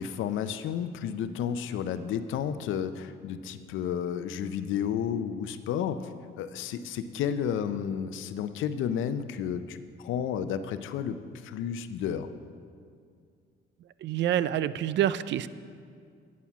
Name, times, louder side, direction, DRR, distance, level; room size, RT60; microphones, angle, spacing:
voice 1, 0.0-12.3, left 8 dB, 80° left, 11 dB, 0.6 m, -32 dB
voice 2, 14.0-15.5, right 11 dB, 65° right, 16 dB, 0.4 m, -27 dB
9.4 x 8.4 x 5.9 m, 2.2 s
cardioid pair, 90°, 20 cm